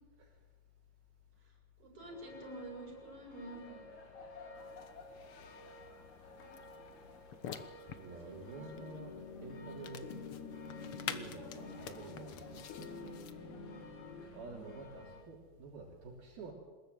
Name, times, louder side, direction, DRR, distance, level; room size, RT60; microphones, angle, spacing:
voice 1, 1.4-3.9 7.7-8.8 14.1-14.8, right 2 dB, 35° right, 0 dB, 7.6 m, -51 dB
sound 1, 2.0-15.3, left 2 dB, 50° left, 4.1 m, -54 dB
sound 2, 4.6-13.3, left 8 dB, 70° left, 1.3 m, -49 dB
voice 2, 8.0-10.1 11.1-12.7 14.3-16.5, right 3 dB, 75° right, -1 dB, 5.0 m, -49 dB
sound 3, 8.7-14.3, left 4 dB, 85° left, 4.3 m, -48 dB
24.0 x 20.5 x 9.4 m, 1.4 s
omnidirectional pair, 4.4 m